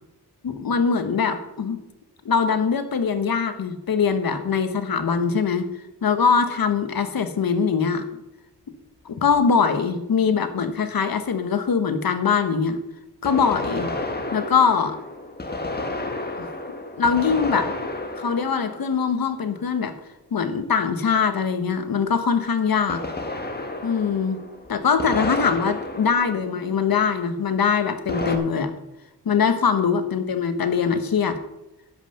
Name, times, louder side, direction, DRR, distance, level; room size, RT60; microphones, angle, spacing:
voice 1, 0.4-1.8 2.2-5.7 6.0-8.1 9.0-12.8 13.2-13.9 14.3-15.0 17.0-17.7 18.2-19.9 20.3-23.0 23.8-24.4 24.7-28.7 29.2-31.4, left 6 dB, 55° left, 9 dB, 1.2 m, -22 dB
sound 1, 9.3-9.4 13.2-19.7 22.9-27.1 28.1-28.4, left 2 dB, 25° left, 1.4 m, -31 dB
10.5 x 5.7 x 6.8 m, 0.91 s
cardioid pair, 80°, 41 cm